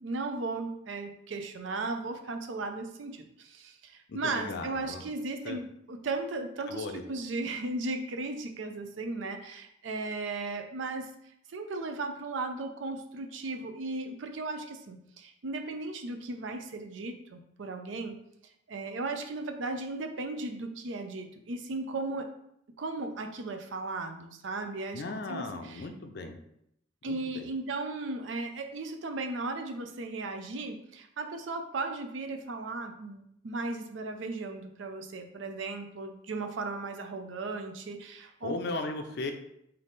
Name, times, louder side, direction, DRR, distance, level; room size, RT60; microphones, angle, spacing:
voice 1, 0.0-11.2 11.5-18.2 18.7-22.4 22.8-25.0 25.3-25.9 27.0-38.5, right 3 dB, 80° right, 6 dB, 0.5 m, -36 dB
voice 2, 4.1-5.0 5.4-5.6 6.7-7.0 24.9-26.4 27.1-27.5 38.4-39.3, left 3 dB, 60° left, 6 dB, 0.4 m, -37 dB
3.5 x 2.7 x 3.9 m, 0.75 s
head